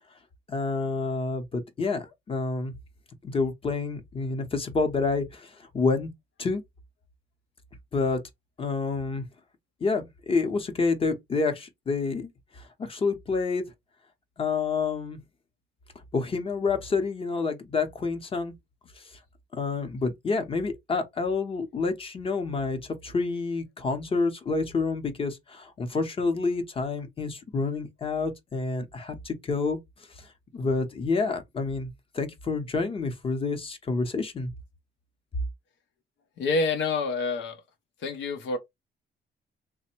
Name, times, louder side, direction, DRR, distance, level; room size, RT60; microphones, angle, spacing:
voice 1, 0.5-2.7 3.2-6.1 6.4-6.6 7.9-8.2 8.6-9.2 9.8-13.6 14.4-15.2 16.1-18.5 19.0-19.1 19.5-29.8 30.2-30.3 30.5-34.5, left 4 dB, 30° left, 0.7 m, -28 dB
voice 2, 36.4-37.6 38.0-38.6, left 3 dB, 85° left, 0.7 m, -27 dB
3.3 x 2.1 x 4.3 m
cardioid pair, 155°, 19 cm